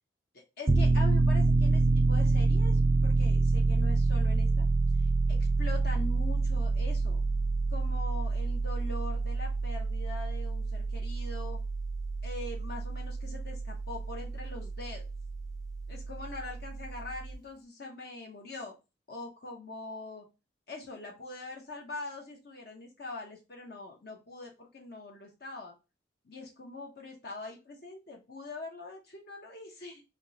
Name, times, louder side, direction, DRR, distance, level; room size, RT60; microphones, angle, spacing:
voice 1, 0.3-4.7 5.3-7.2 7.7-11.6 12.2-15.0 15.9-18.7 19.1-20.3 20.7-25.8 26.2-30.0, left 2 dB, 55° left, 0 dB, 0.8 m, -43 dB
Piano, 0.7-17.3, right 3 dB, 15° right, 0.3 m, -28 dB
3.5 x 2.7 x 4.1 m, 0.27 s
head